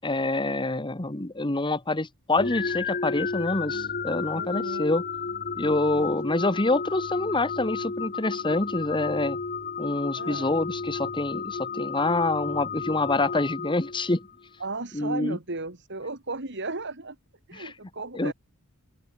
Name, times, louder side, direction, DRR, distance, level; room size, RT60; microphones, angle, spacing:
voice 1, 0.0-5.0 5.6-9.4 9.8-14.3 14.9-15.4 17.5-17.7 18.1-18.3, left 2 dB, 20° left, 1.3 m, -26 dB
sound 1, 2.4-14.3, left 5 dB, 45° left, 1.3 m, -32 dB
voice 2, 4.3-4.8 5.9-6.1 10.2-10.5 14.6-17.2 17.5-18.3, right 3 dB, 55° right, 3.7 m, -35 dB
open air
head